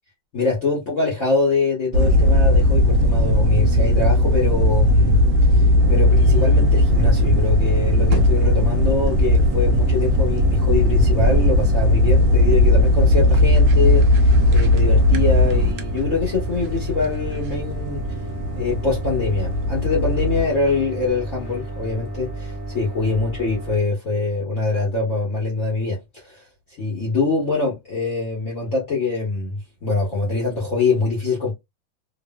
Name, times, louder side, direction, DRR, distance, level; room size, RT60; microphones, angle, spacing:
voice 1, 0.3-5.2 5.5-18.0 18.5-26.4 26.8-31.5, left 3 dB, 50° left, 1.1 m, -24 dB
sound 1, 1.9-20.4, left 1 dB, 75° right, 0.8 m, -17 dB
sound 2, 5.8-23.8, right 1 dB, 80° left, 0.4 m, -32 dB
3.1 x 2.6 x 2.2 m
omnidirectional pair, 2.2 m